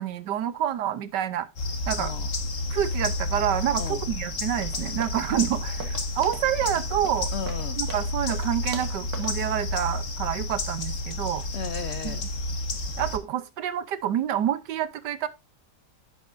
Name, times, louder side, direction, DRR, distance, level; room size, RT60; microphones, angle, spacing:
voice 1, 0.0-1.5 1.9-2.1 2.7-7.3 7.8-11.4 12.0-12.2 13.0-15.3, right 10 dB, 85° right, 1.5 m, -28 dB
sound 1, 1.6-13.2, left 2 dB, 50° left, 1.7 m, -31 dB
voice 2, 2.0-2.3 3.8-4.0 7.3-7.8 11.5-12.3, left 7 dB, 70° left, 0.6 m, -35 dB
sound 2, 4.5-9.5, right 4 dB, 60° right, 2.1 m, -42 dB
10.0 x 8.0 x 2.6 m
omnidirectional pair, 1.8 m